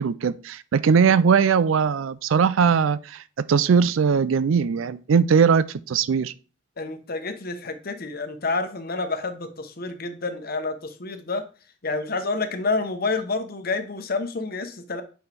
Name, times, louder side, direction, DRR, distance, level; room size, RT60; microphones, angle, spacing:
voice 1, 0.0-6.3, right 6 dB, 85° right, 0.4 m, -20 dB
voice 2, 6.8-11.5 11.8-15.0, left 3 dB, 50° left, 0.9 m, -29 dB
8.3 x 5.5 x 3.4 m
head